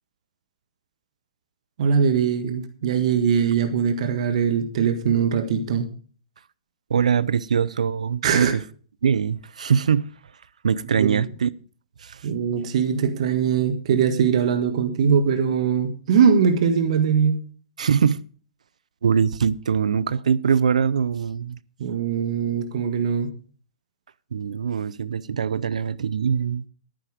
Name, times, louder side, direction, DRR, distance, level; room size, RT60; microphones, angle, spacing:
voice 1, 1.8-5.9 8.2-8.5 10.9-11.3 12.2-17.4 21.8-23.3, right 7 dB, 65° right, 1.5 m, -21 dB
voice 2, 6.9-8.5 9.0-10.1 10.6-11.5 12.0-12.2 17.8-18.2 19.0-21.6 24.3-26.6, right 7 dB, 85° right, 0.6 m, -22 dB
10.5 x 10.0 x 4.9 m
hypercardioid pair, 125°, 4 cm